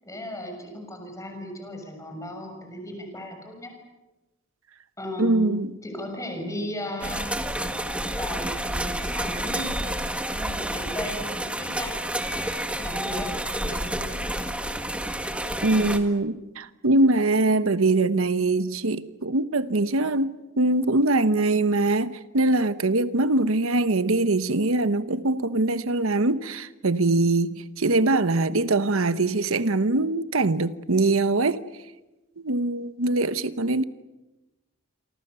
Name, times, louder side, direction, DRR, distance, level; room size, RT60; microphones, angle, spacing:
voice 1, 0.0-3.7 5.0-5.5 5.8-7.3 8.1-9.7 10.3-12.0 12.8-14.2, equal, 15° left, 6.7 m, -36 dB
voice 2, 5.2-5.7 15.6-31.6 32.4-33.8, right 2 dB, 75° right, 1.1 m, -23 dB
sound 1, 7.0-16.0, right 1 dB, 5° right, 1.8 m, -29 dB
28.5 x 25.0 x 6.9 m
head